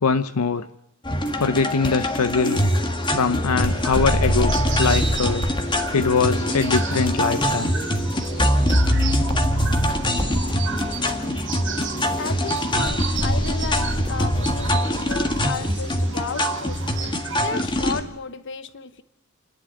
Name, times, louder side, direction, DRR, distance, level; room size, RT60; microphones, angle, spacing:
voice 1, 0.0-0.7 1.4-2.7 3.1-5.4 5.9-7.8, left 5 dB, 85° left, 12 dB, 0.7 m, -22 dB
sound 1, 1.1-18.0, equal, 20° left, 1.8 m, -23 dB
sound 2, 3.6-17.6, right 6 dB, 55° right, 1.8 m, -35 dB
voice 2, 12.2-16.8 17.4-19.0, left 5 dB, 55° left, 13 dB, 1.2 m, -33 dB
29.0 x 11.5 x 8.0 m, 0.88 s
head